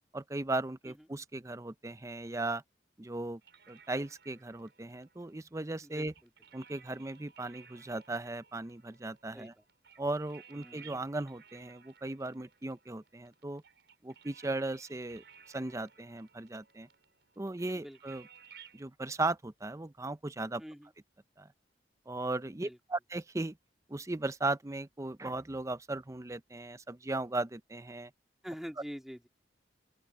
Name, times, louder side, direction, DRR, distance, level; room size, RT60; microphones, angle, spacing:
voice 1, 0.1-2.6 3.0-3.4 3.7-6.1 6.5-9.5 10.0-13.6 14.0-16.9 17.4-18.3 18.7-20.6 21.4-21.5 22.1-23.6 23.9-28.1, right 2 dB, 15° right, 0.5 m, -37 dB
sound 1, 3.4-18.8, right 7 dB, 75° right, 4.7 m, -59 dB
voice 2, 10.6-11.1 17.7-18.0 20.6-20.9 22.6-22.8 28.4-29.3, equal, ahead, 2.0 m, -45 dB
open air
head